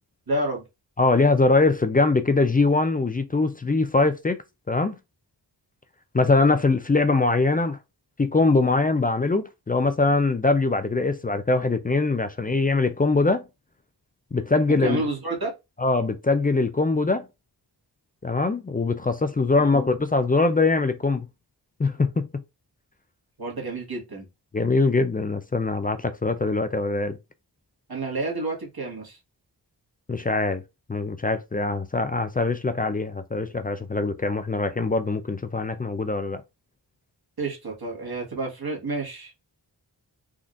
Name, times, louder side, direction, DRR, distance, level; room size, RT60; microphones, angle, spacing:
voice 1, 0.3-0.6 14.8-15.5 23.4-24.3 27.9-29.2 37.4-39.3, right 2 dB, 60° right, 1.5 m, -29 dB
voice 2, 1.0-4.4 4.7-5.0 6.1-7.8 8.2-13.4 14.3-15.0 15.8-17.3 18.2-21.3 21.8-22.2 24.5-27.2 30.1-30.6 30.9-36.4, left 3 dB, 20° left, 0.3 m, -22 dB
3.6 x 2.5 x 2.4 m
wide cardioid pair, 45°, 43 cm